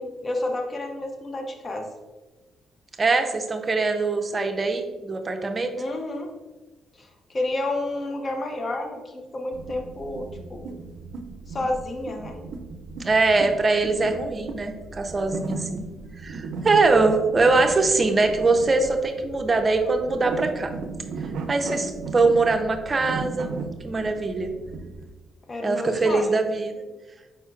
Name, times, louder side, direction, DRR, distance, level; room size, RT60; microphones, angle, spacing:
voice 1, 0.0-1.9 5.8-6.3 7.0-10.7 11.5-12.4 25.5-26.4, left 2 dB, 35° left, 3 dB, 0.7 m, -30 dB
voice 2, 3.0-5.7 13.0-15.8 16.2-20.7 21.5-23.6 23.8-24.5 25.6-26.8, right 3 dB, 30° right, 4 dB, 0.6 m, -22 dB
sound 1, 9.5-25.0, right 4 dB, 75° right, 0.4 m, -36 dB
5.0 x 4.3 x 2.4 m, 1.2 s
cardioid pair, 90°, 0 cm